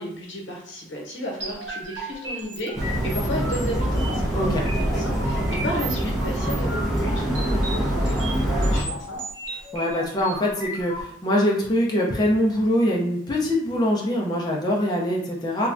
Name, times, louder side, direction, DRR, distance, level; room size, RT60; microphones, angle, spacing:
voice 1, 0.0-9.2, equal, 85° left, -1 dB, 0.9 m, -33 dB
sound 1, 1.4-11.0, right 2 dB, 75° right, 0.7 m, -35 dB
sound 2, 2.7-8.8, equal, ahead, 0.8 m, -24 dB
voice 2, 9.7-15.7, left 1 dB, 20° left, -3 dB, 0.4 m, -23 dB
3.0 x 2.2 x 2.5 m, 0.70 s
head